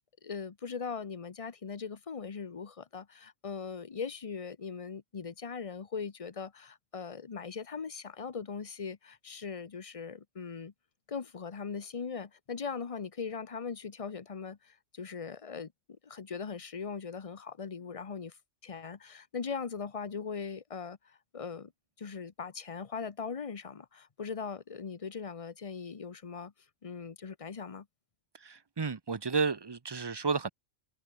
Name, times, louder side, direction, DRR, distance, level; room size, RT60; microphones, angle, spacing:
voice 1, 0.0-10.7 11.1-15.7 16.0-18.4 18.6-21.7 22.0-26.5 26.8-27.9, left 5 dB, 30° left, 0.8 m, -40 dB
voice 2, 28.3-30.5, right 5 dB, 25° right, 0.6 m, -32 dB
omnidirectional pair, 1.3 m